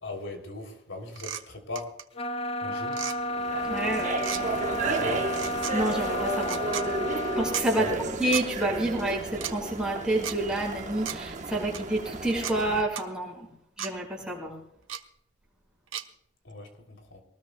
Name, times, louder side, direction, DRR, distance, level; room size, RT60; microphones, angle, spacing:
voice 1, 0.0-1.9 2.6-3.1 4.8-5.3 7.8-8.1 16.4-17.2, left 1 dB, 75° left, 3 dB, 3.4 m, -38 dB
sound 1, 1.2-1.4 1.8-2.0 2.9-3.2 4.2-4.4 5.3-5.7 6.4-6.9 7.5-7.7 8.3-8.5 9.3-9.5 10.2-10.4 11.1-11.2 11.7-11.8 12.4-12.6 13.0-13.1 13.8-13.9 14.9-15.0 15.9-16.0, right 10 dB, 80° right, 1.0 m, -34 dB
sound 2, 2.1-7.7, left 1 dB, 30° left, 0.6 m, -32 dB
sound 3, 3.3-12.8, right 2 dB, 35° right, 1.2 m, -33 dB
voice 2, 3.7-4.6 5.7-6.6 7.4-7.9 8.2-13.5 13.8-14.5, right 1 dB, 5° right, -3 dB, 5.6 m, -29 dB
22.5 x 19.5 x 2.3 m, 0.78 s
head